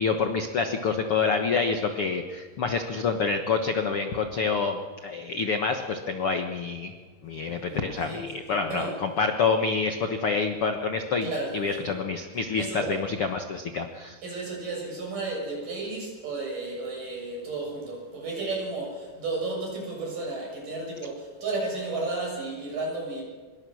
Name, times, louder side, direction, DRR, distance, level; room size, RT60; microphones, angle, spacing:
voice 1, 0.0-6.9 7.2-14.2, left 4 dB, 65° left, 5 dB, 1.4 m, -27 dB
voice 2, 7.6-8.2 8.5-9.0 11.2-11.9 12.6-13.0 14.2-23.2, right 3 dB, 55° right, -1 dB, 8.5 m, -33 dB
26.0 x 22.5 x 6.4 m, 1.5 s
omnidirectional pair, 4.5 m